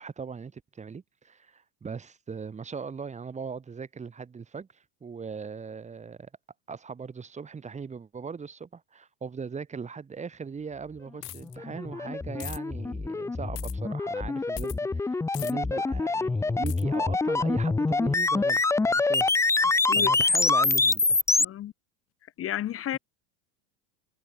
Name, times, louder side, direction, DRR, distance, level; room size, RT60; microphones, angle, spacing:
voice 1, 0.0-6.3 6.7-19.6 20.0-21.2, right 5 dB, 15° right, 3.7 m, -39 dB
sound 1, 11.2-11.6 12.4-12.6 13.6-13.7 14.6-14.8 15.3-15.5 16.7-16.8, left 17 dB, 90° left, 1.4 m, -40 dB
sound 2, 11.4-21.5, left 3 dB, 5° left, 0.9 m, -25 dB
voice 2, 21.4-21.7 22.4-23.0, left 12 dB, 30° left, 3.0 m, -32 dB
supercardioid pair, 150°, 46 cm